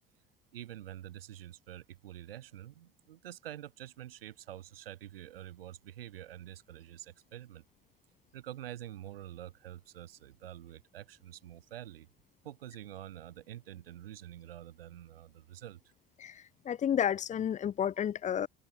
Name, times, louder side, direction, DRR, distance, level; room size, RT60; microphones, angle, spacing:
voice 1, 0.5-7.6 8.3-12.1 12.4-15.8, right 12 dB, 70° right, 1.9 m, -47 dB
voice 2, 16.2-18.5, left 9 dB, 25° left, 0.6 m, -31 dB
figure-of-eight pair, 60°, 30 cm